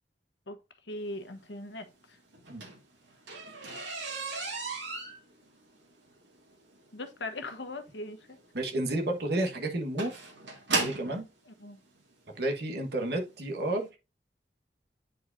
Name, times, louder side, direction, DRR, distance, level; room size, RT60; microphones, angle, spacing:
voice 1, 0.9-1.9 6.9-8.4 11.6-11.8, left 2 dB, 80° left, 1.2 m, -39 dB
sound 1, 2.3-11.2 12.1-12.2 12.8-13.0 13.3-13.4 13.7-13.8, right 3 dB, 85° right, 2.1 m, -36 dB
voice 2, 8.5-10.1 10.7-11.3 12.4-13.9, right 1 dB, 60° right, 1.4 m, -31 dB
9.4 x 4.7 x 2.6 m
head